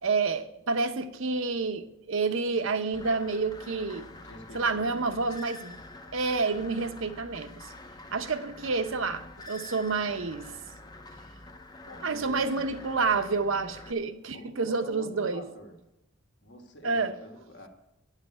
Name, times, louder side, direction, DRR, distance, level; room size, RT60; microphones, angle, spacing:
voice 1, 0.0-4.1 4.5-5.8 6.1-7.7 8.1-10.5 12.0-15.5 16.8-17.1, right 4 dB, 70° right, 0.8 m, -29 dB
sound 1, 2.9-13.9, left 2 dB, 20° left, 0.6 m, -47 dB
voice 2, 4.1-5.1 11.8-12.8 14.3-15.8 16.4-17.7, equal, 55° left, 1.6 m, -47 dB
10.0 x 5.8 x 7.9 m
head